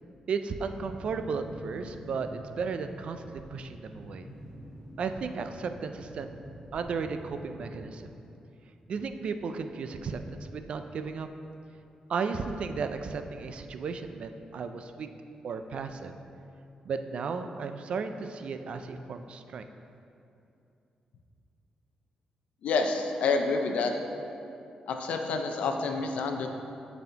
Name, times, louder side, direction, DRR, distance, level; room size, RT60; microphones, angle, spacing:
voice 1, 0.3-4.3 5.0-6.3 6.7-8.1 8.9-11.3 12.1-15.1 15.4-16.1 16.8-19.7, right 5 dB, 55° right, 8 dB, 0.3 m, -34 dB
sound 1, 0.6-7.8, equal, 15° left, 1.2 m, -47 dB
voice 2, 22.6-24.0 24.9-26.5, left 4 dB, 80° left, 5 dB, 0.5 m, -28 dB
10.5 x 4.1 x 2.8 m, 2.7 s
wide cardioid pair, 145°, 2 cm